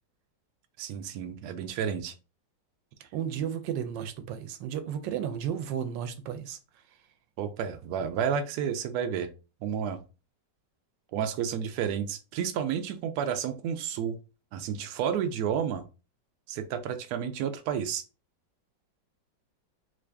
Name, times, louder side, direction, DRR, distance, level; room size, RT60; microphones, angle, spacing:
voice 1, 0.8-2.1 7.4-9.3 9.6-10.0 11.1-14.2 14.5-15.8 16.5-18.0, right 8 dB, 70° right, 1.0 m, -31 dB
voice 2, 3.1-6.6, right 9 dB, 90° right, 1.3 m, -33 dB
3.1 x 2.6 x 3.3 m
omnidirectional pair, 1.9 m